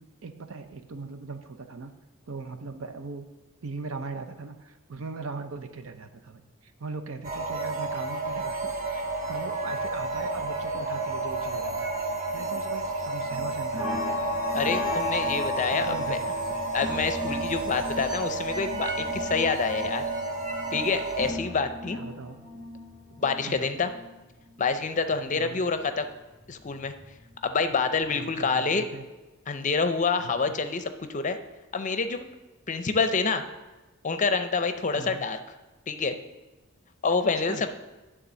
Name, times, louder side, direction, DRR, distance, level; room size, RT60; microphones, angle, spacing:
voice 1, 0.2-1.9 2.3-3.3 3.6-14.2 15.7-16.6 21.9-22.8 23.4-23.8 25.3-25.7 28.1-29.1 30.2-30.5 35.0-35.3 37.2-37.7, right 4 dB, 80° right, 8 dB, 0.7 m, -40 dB
sound 1, 7.2-21.3, right 2 dB, 40° right, 0.9 m, -31 dB
sound 2, 13.3-25.4 25.8-27.4 27.8-28.1 28.4-28.5, left 2 dB, 15° right, 1.3 m, -36 dB
voice 2, 14.5-16.2 16.7-20.1 20.7-22.0 23.2-23.9 24.6-26.1 26.5-26.9 27.4-28.8 29.5-31.4 31.7-32.2 32.7-33.4 34.0-35.4 35.9-36.1 37.0-37.7, left 4 dB, 35° left, 9 dB, 0.5 m, -27 dB
11.0 x 3.7 x 6.2 m, 1.1 s
head